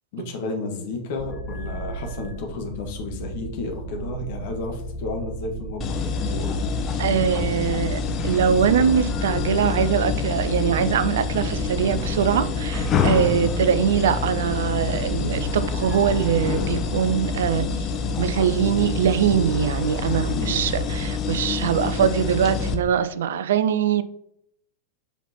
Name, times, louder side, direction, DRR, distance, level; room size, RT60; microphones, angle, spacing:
voice 1, 0.1-6.5 20.3-20.8, left 3 dB, 50° left, 2 dB, 1.6 m, -32 dB
sound 1, 1.2-21.1, right 3 dB, ahead, 2.1 m, -35 dB
sound 2, 5.8-22.7, left 5 dB, 30° left, 0.9 m, -27 dB
voice 2, 7.0-17.9 18.2-24.0, right 8 dB, 60° right, 13 dB, 0.4 m, -22 dB
7.0 x 5.6 x 2.9 m, 0.73 s
figure-of-eight pair, 90°, 0 cm